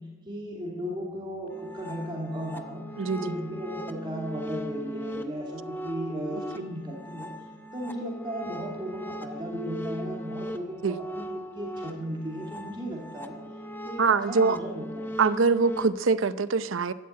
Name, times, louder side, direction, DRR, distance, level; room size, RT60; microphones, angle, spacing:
voice 1, 0.2-2.8 3.2-7.3 7.7-11.3 11.5-13.4 13.8-15.2, equal, 25° right, -2 dB, 2.6 m, -35 dB
sound 1, 1.5-15.9, equal, 10° left, 0.8 m, -39 dB
voice 2, 3.0-3.3 6.3-6.4 10.8-11.0 14.0-14.6 15.2-16.9, right 4 dB, 85° right, 14 dB, 0.7 m, -24 dB
13.0 x 12.5 x 8.7 m, 1.3 s
head